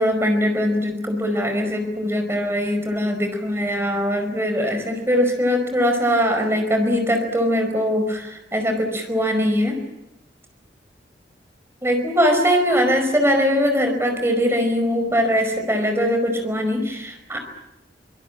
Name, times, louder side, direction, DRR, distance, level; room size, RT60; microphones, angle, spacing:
voice 1, 0.0-9.8 11.8-17.4, equal, 15° right, 5 dB, 5.1 m, -21 dB
24.5 x 21.0 x 8.8 m, 0.91 s
head